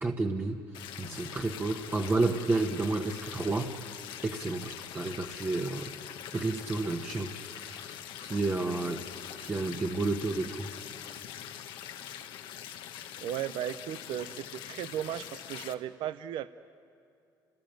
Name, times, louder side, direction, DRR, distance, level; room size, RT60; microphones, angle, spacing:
voice 1, 0.0-5.9 6.3-9.0 9.4-10.7, right 3 dB, 25° right, 2 dB, 1.2 m, -31 dB
sound 1, 0.7-15.7, left 10 dB, 80° left, 1.2 m, -43 dB
voice 2, 13.2-16.5, right 11 dB, 75° right, 13 dB, 0.6 m, -36 dB
29.5 x 19.5 x 9.1 m, 2.4 s
cardioid pair, 105°, 8 cm